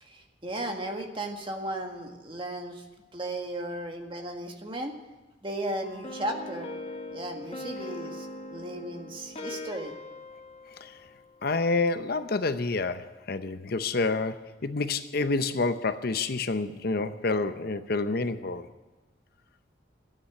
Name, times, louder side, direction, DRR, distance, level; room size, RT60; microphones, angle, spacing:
voice 1, 0.0-2.8 3.1-4.9 5.4-6.7 7.1-10.0, right 1 dB, 30° right, 1.7 m, -35 dB
sound 1, 5.8-11.5, left 1 dB, 35° left, 1.4 m, -41 dB
voice 2, 11.4-18.7, left 3 dB, 55° left, 0.7 m, -28 dB
13.0 x 9.2 x 8.4 m
head